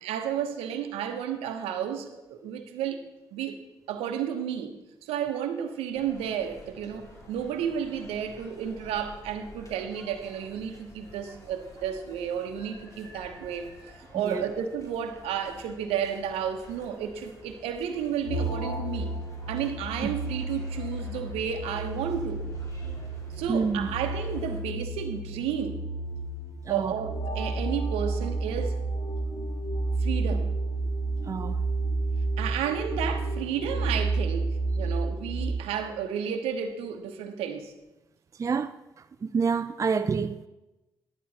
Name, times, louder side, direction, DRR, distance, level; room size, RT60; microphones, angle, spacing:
voice 1, 0.0-3.0 3.3-3.6 3.9-19.1 19.5-22.4 23.3-25.8 26.7-28.8 30.0-30.5 32.4-37.7, right 8 dB, 75° right, 1.0 m, -32 dB
sound 1, 5.9-24.6, left 2 dB, 30° left, 3.1 m, -49 dB
sound 2, 18.2-35.5, right 2 dB, 60° left, 1.5 m, -31 dB
voice 2, 23.5-23.9 26.7-26.9 31.2-31.6 38.4-38.8 39.2-40.5, right 5 dB, 30° right, 0.4 m, -28 dB
11.0 x 9.2 x 4.1 m
hypercardioid pair, 45°, 10 cm